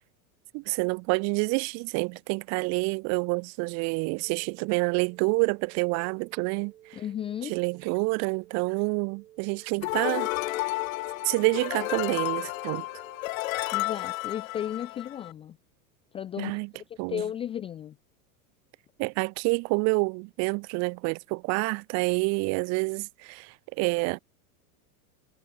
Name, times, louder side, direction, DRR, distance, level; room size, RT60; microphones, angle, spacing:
voice 1, 0.5-7.0 7.4-10.3 11.2-12.8 16.4-16.7 17.0-17.2 19.0-24.2, right 30 dB, 40° right, 0.6 m, -28 dB
sound 1, 4.2-14.2, right 13 dB, 90° right, 4.0 m, -54 dB
voice 2, 6.9-7.6 13.7-15.6 16.1-18.0, left 10 dB, 15° left, 0.4 m, -34 dB
sound 2, 9.8-15.3, left 20 dB, 65° left, 1.4 m, -32 dB
supercardioid pair, 135°, 43 cm